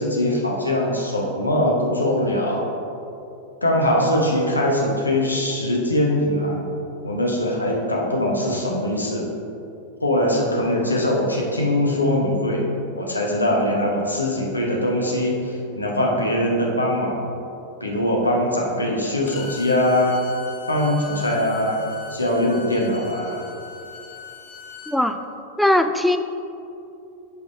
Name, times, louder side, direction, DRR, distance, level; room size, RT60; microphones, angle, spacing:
voice 1, 0.0-2.6 3.6-6.6 7.0-9.3 10.0-12.6 13.0-17.2 17.8-20.2 20.7-21.8 22.1-23.5, left 1 dB, 80° left, -1 dB, 1.1 m, -22 dB
Bowed string instrument, 19.3-25.0, left 5 dB, 40° left, 0.7 m, -39 dB
voice 2, 24.9-25.2 25.6-26.2, left 1 dB, ahead, 8 dB, 0.3 m, -19 dB
8.0 x 5.1 x 3.5 m, 2.7 s
figure-of-eight pair, 90°, 0 cm